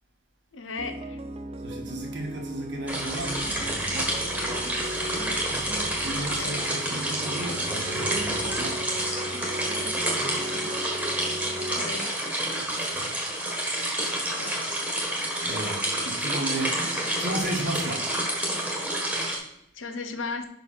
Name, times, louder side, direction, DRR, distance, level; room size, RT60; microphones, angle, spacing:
voice 1, 0.5-1.2 6.3-6.5 11.6-12.1 14.3-14.8 19.7-20.5, left 4 dB, 75° left, 7 dB, 0.9 m, -36 dB
sound 1, 0.8-11.9, right 1 dB, 30° right, 0.4 m, -37 dB
voice 2, 1.6-4.1 4.4-4.9 5.8-9.1 12.6-13.1 15.4-16.8 17.2-18.1, right 1 dB, 60° right, 0 dB, 1.6 m, -34 dB
sound 2, 2.9-8.9, right 1 dB, 30° left, 1.3 m, -46 dB
sound 3, 2.9-19.4, right 1 dB, 5° right, 1.5 m, -29 dB
6.0 x 4.6 x 5.7 m, 0.74 s
head